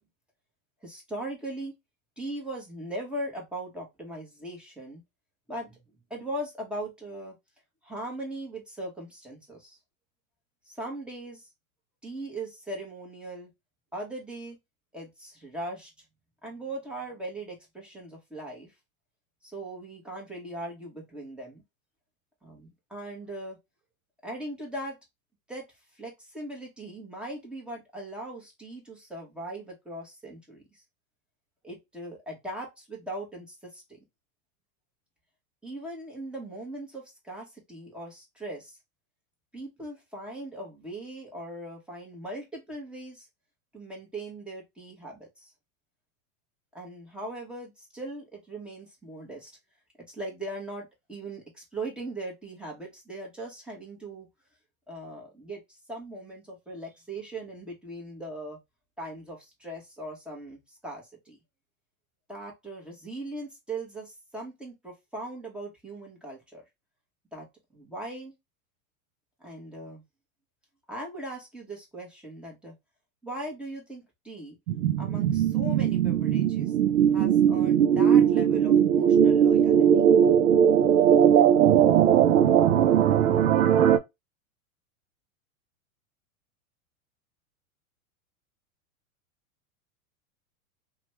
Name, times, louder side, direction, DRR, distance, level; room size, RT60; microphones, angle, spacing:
voice 1, 0.8-1.8 2.2-5.0 5.5-5.8 6.1-7.4 7.8-9.8 10.7-11.5 12.0-13.5 13.9-14.6 14.9-15.9 16.4-18.7 19.4-21.6 22.4-23.6 24.2-25.0 25.5-25.6 25.9-30.8 31.6-34.0 35.6-38.8 39.5-43.3 43.7-45.5 46.7-49.5 50.1-54.3 54.9-58.6 59.0-61.4 62.3-66.6 67.3-67.5 67.7-68.3 69.4-70.0 70.9-72.7 73.2-74.6 75.0-76.7 77.1-80.0, right 1 dB, ahead, 1.1 m, -39 dB
sound 1, 74.7-84.0, right 9 dB, 75° right, 0.5 m, -20 dB
2.9 x 2.3 x 3.0 m
hypercardioid pair, 115°, 42 cm